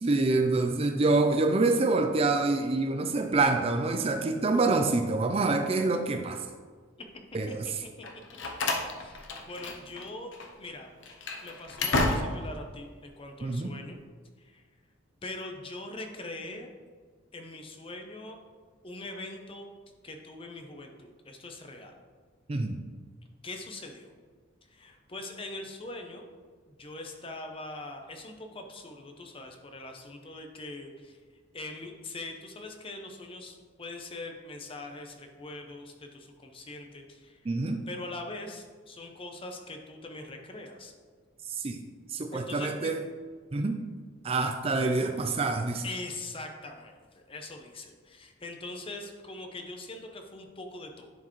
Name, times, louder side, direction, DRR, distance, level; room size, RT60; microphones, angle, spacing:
voice 1, 0.0-6.5 7.3-7.8 13.4-13.7 22.5-22.8 37.5-37.8 41.5-41.8 42.1-43.0 43.5-43.8 44.2-45.9, right 3 dB, 30° right, 6 dB, 0.4 m, -26 dB
Slam, 8.0-10.1 10.3-10.5 11.0-12.6, left 2 dB, 70° left, 0.8 m, -31 dB
voice 2, 9.0-10.3 10.6-10.9 11.4-14.0 14.4-14.6 15.2-16.7 17.3-18.4 18.8-19.7 20.0-21.9 23.4-24.1 24.7-26.2 26.7-31.2 31.5-37.5 37.9-40.9 42.3-42.9 45.8-51.1, left 2 dB, 25° left, 4 dB, 0.7 m, -42 dB
10.5 x 4.6 x 3.1 m, 1.5 s
head